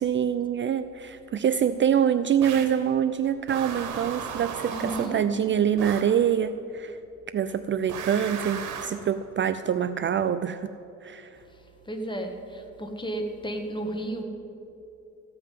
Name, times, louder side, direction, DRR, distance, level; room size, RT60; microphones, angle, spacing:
voice 1, 0.0-7.0 7.3-10.7 11.0-11.3, right 8 dB, 40° right, 12 dB, 0.4 m, -25 dB
sound 1, 2.4-2.8 3.5-5.3 5.8-6.2 7.9-9.1, right 7 dB, 85° right, 1.3 m, -35 dB
voice 2, 4.7-5.2 11.8-14.2, right 1 dB, 15° left, 4 dB, 1.6 m, -33 dB
14.5 x 5.6 x 9.2 m, 2.8 s
cardioid pair, 90°, 30 cm